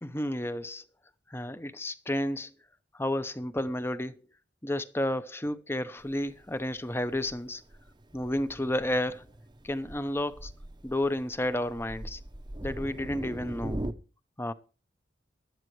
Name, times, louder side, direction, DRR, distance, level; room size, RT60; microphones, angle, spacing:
voice 1, 0.0-0.8 1.3-2.5 2.9-4.3 4.6-7.6 8.1-9.2 9.6-10.5 10.8-12.2 12.6-13.8 14.4-14.5, left 1 dB, 10° left, 0.7 m, -31 dB
Thunder, 6.0-13.9, right 1 dB, 20° right, 0.7 m, -41 dB
18.5 x 12.5 x 3.1 m
head